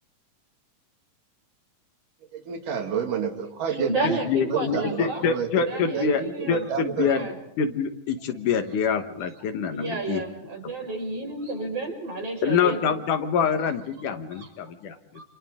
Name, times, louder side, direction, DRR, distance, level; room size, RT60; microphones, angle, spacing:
voice 1, 2.3-7.1, right 7 dB, 75° right, 5 dB, 3.6 m, -30 dB
voice 2, 3.7-5.3 5.5-6.7 7.0-7.4 9.7-12.9 14.3-14.5 15.1-15.2, right 2 dB, 45° right, 2 dB, 6.3 m, -31 dB
voice 3, 4.3-6.2 6.5-7.3 7.6-10.2 12.4-15.0, left 6 dB, 70° left, 8 dB, 2.7 m, -25 dB
29.0 x 27.5 x 3.7 m, 0.80 s
omnidirectional pair, 3.8 m